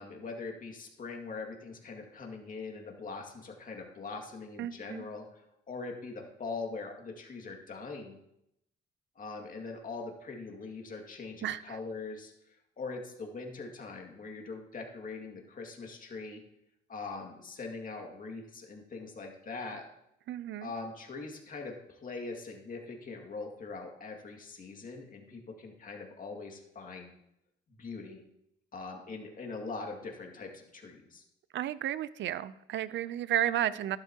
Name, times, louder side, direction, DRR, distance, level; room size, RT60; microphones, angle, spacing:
voice 1, 0.0-8.2 9.2-16.4 16.9-19.9 20.6-27.1 27.7-28.2 28.7-31.2, left 3 dB, 45° left, 2 dB, 2.1 m, -42 dB
voice 2, 4.6-5.0 11.4-11.6 20.3-20.7 31.5-34.0, right 12 dB, 65° right, 17 dB, 0.5 m, -32 dB
12.0 x 11.5 x 2.9 m, 0.81 s
cardioid pair, 90°, 20 cm